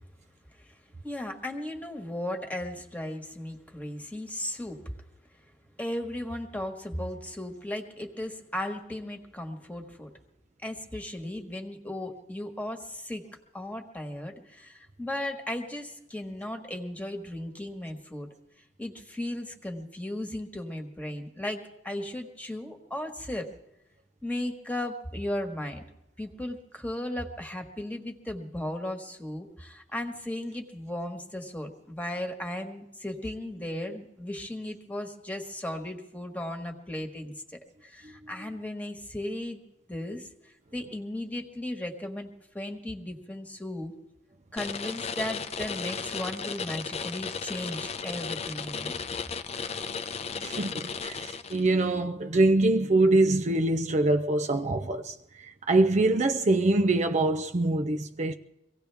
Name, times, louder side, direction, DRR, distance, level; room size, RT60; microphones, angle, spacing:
voice 1, 1.0-4.8 5.8-10.1 10.6-13.2 13.5-18.3 18.8-23.5 24.2-25.8 26.2-37.3 37.8-39.6 39.9-43.9 44.5-49.0, left 1 dB, 10° left, 1.6 m, -36 dB
sound 1, 44.6-51.8, left 5 dB, 35° left, 0.6 m, -35 dB
voice 2, 50.4-58.3, right 2 dB, 40° right, 0.6 m, -24 dB
24.0 x 17.0 x 3.5 m
head